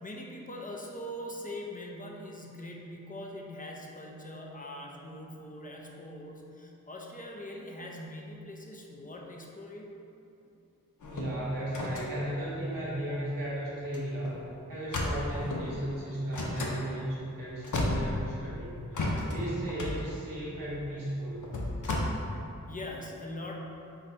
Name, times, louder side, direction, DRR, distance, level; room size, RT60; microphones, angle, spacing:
voice 1, 0.0-9.9 22.7-23.6, left 1 dB, 25° left, -1 dB, 0.6 m, -42 dB
sound 1, 11.0-13.4 13.8-14.0 14.2-14.4 14.9-15.7 16.3-16.8 17.3-17.4 17.6-18.5 18.9-22.0, left 2 dB, 65° left, 0.7 m, -33 dB
voice 2, 11.1-14.4 14.7-21.5, right 1 dB, 85° right, -7 dB, 1.2 m, -35 dB
3.8 x 2.7 x 4.4 m, 2.7 s
cardioid pair, 45°, 32 cm